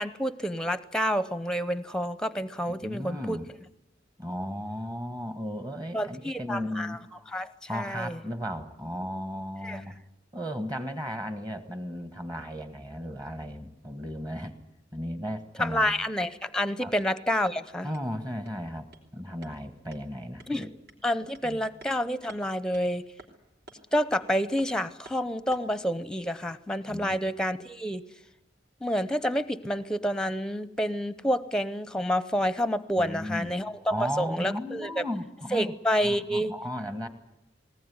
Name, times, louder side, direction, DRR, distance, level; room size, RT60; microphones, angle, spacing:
voice 1, 0.0-3.4 5.9-7.0 7.3-8.2 9.6-9.8 15.6-17.9 20.5-20.7 21.0-23.0 23.9-28.0 28.8-35.0 35.5-36.5, equal, 5° left, 14 dB, 0.7 m, -29 dB
voice 2, 2.7-3.5 4.2-7.0 7.7-10.0 10.3-14.5 14.9-16.0 16.8-16.9 17.8-18.9 19.1-20.7 21.4-21.7 26.9-27.2 33.0-33.5 33.9-35.7 36.0-37.1, equal, 20° right, 9 dB, 1.5 m, -35 dB
sound 1, 16.7-25.8, right 2 dB, 60° right, 3.7 m, -56 dB
20.0 x 19.0 x 9.5 m, 0.88 s
head